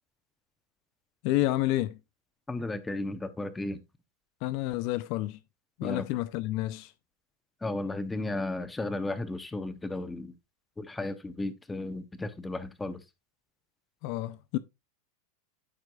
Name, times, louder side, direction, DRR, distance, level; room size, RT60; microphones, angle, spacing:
voice 1, 1.2-2.0 4.4-5.4 5.8-6.9 14.0-14.6, left 16 dB, 45° left, 0.4 m, -29 dB
voice 2, 2.5-3.8 5.8-6.1 7.6-10.3 10.8-13.0, left 2 dB, 5° left, 0.7 m, -34 dB
14.0 x 4.7 x 2.3 m
supercardioid pair, 160°, 0 cm